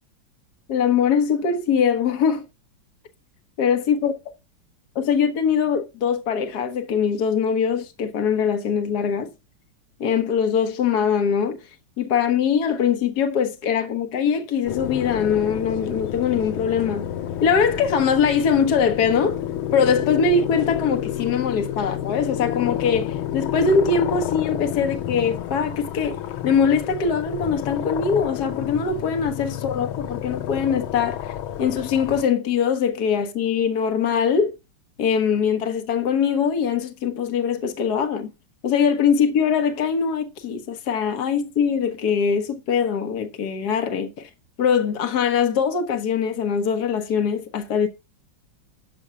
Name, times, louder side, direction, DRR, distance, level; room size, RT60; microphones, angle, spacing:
voice 1, 0.7-2.4 3.6-4.1 4.9-9.3 10.0-11.6 12.0-17.0 17.4-19.4 19.7-31.3 31.6-34.5 35.0-38.3 38.6-44.3 44.6-47.9, left 6 dB, 55° left, 1.6 m, -22 dB
sound 1, 14.7-32.2, left 11 dB, 85° left, 1.6 m, -30 dB
12.5 x 4.6 x 5.7 m
omnidirectional pair, 2.2 m